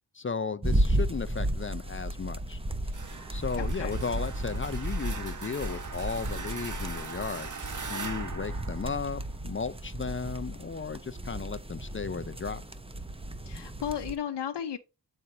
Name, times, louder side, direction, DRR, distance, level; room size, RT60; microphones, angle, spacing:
voice 1, 0.1-2.6 3.3-7.5 7.9-12.6, left 5 dB, 30° left, 0.5 m, -35 dB
sound 1, 0.6-14.1, right 1 dB, 15° right, 0.8 m, -33 dB
sound 2, 2.9-9.6, right 4 dB, 45° right, 1.1 m, -41 dB
voice 2, 3.6-4.0 13.5-14.8, left 9 dB, 75° left, 0.7 m, -34 dB
9.5 x 4.4 x 3.9 m
wide cardioid pair, 100°, 42 cm